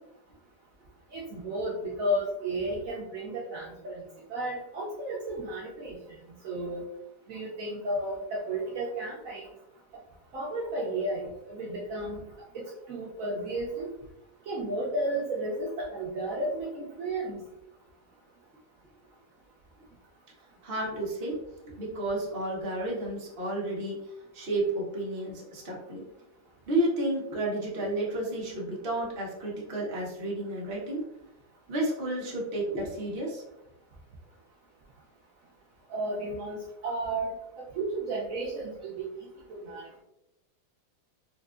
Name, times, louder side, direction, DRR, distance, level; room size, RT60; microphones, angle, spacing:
voice 1, 1.1-4.0 4.3-6.0 6.4-6.8 7.3-9.5 10.3-12.2 12.5-13.9 14.5-17.5 35.9-37.3 37.6-39.1 39.5-40.0, right 1 dB, 80° right, -4 dB, 0.7 m, -33 dB
voice 2, 20.6-21.3 21.8-24.0 24.3-26.0 26.7-31.0 31.7-33.4, right 1 dB, 45° right, -4 dB, 0.8 m, -31 dB
4.5 x 2.3 x 2.4 m, 0.88 s
omnidirectional pair, 2.1 m